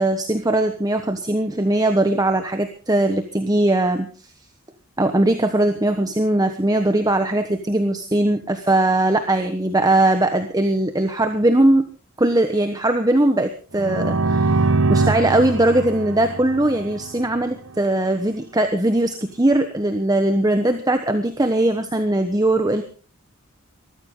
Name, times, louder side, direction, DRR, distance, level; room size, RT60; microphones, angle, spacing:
voice 1, 0.0-4.1 5.0-11.9 12.2-22.8, right 1 dB, 15° right, 7 dB, 1.2 m, -20 dB
sound 1, 13.7-17.5, right 3 dB, 65° right, 1.2 m, -22 dB
20.5 x 14.5 x 3.9 m, 0.37 s
head